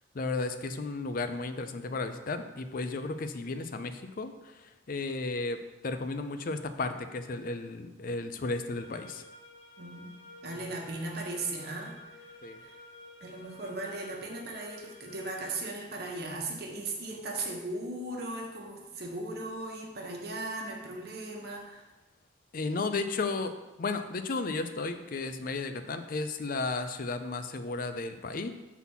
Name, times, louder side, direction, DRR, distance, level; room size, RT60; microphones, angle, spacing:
voice 1, 0.1-5.6 5.8-9.2 12.4-12.6 22.5-23.5 23.8-28.5, left 3 dB, 45° left, 9 dB, 0.5 m, -34 dB
sound 1, 8.7-15.6, left 2 dB, 75° left, 1.1 m, -51 dB
voice 2, 9.8-12.3 12.6-12.8 13.2-21.8, right 2 dB, 55° right, 0 dB, 1.2 m, -38 dB
5.8 x 4.1 x 5.5 m, 1.1 s
head